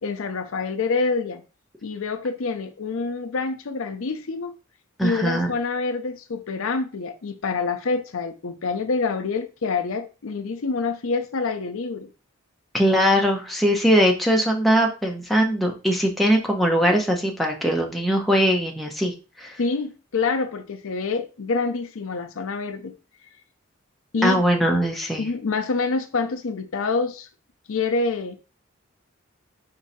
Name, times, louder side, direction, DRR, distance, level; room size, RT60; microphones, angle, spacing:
voice 1, 0.0-1.4 1.8-4.5 5.0-12.1 19.6-22.9 24.1-24.4 25.2-27.3 27.7-28.4, left 4 dB, 75° left, 0.6 m, -26 dB
voice 2, 5.0-5.5 12.7-19.5 24.2-25.2, equal, ahead, 0.7 m, -21 dB
4.6 x 2.7 x 4.1 m
head